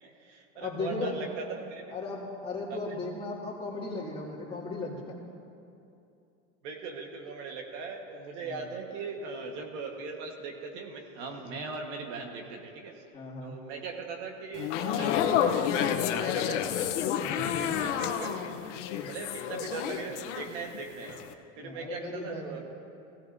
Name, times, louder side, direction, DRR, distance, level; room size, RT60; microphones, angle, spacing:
voice 1, 0.0-1.9 2.7-3.0 6.6-13.0 13.4-16.9 17.4-18.4 19.1-21.2 21.6-22.6, right 4 dB, 70° right, 2 dB, 1.4 m, -39 dB
voice 2, 0.6-1.2 1.9-5.2 8.4-8.7 11.4-11.5 13.1-13.6 17.2-17.6 21.6-22.6, left 3 dB, 15° left, -5 dB, 2.3 m, -37 dB
sound 1, 14.5-20.8 21.1-21.3, left 9 dB, 80° left, 0.8 m, -30 dB
16.0 x 15.0 x 2.6 m, 2.6 s
supercardioid pair, 130°, 36 cm